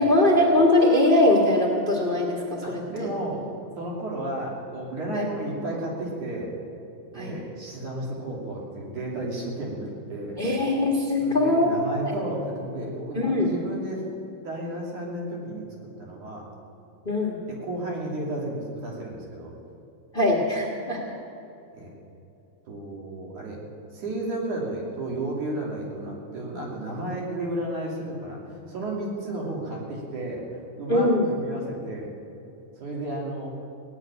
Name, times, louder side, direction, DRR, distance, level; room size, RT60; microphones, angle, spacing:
voice 1, 0.0-3.1 5.1-5.2 7.1-7.3 10.4-11.7 12.0-12.1 13.1-13.5 17.0-17.4 20.1-21.1 30.9-31.2, left 1 dB, 25° left, -1 dB, 1.1 m, -21 dB
voice 2, 2.6-3.5 3.8-6.5 7.1-10.4 11.2-14.0 14.4-15.7 16.0-16.5 17.5-19.5 21.7-21.9 22.7-23.6 23.9-32.1 32.8-33.5, right 1 dB, 80° right, -3 dB, 4.3 m, -33 dB
17.0 x 8.2 x 9.9 m, 2.8 s
omnidirectional pair, 3.4 m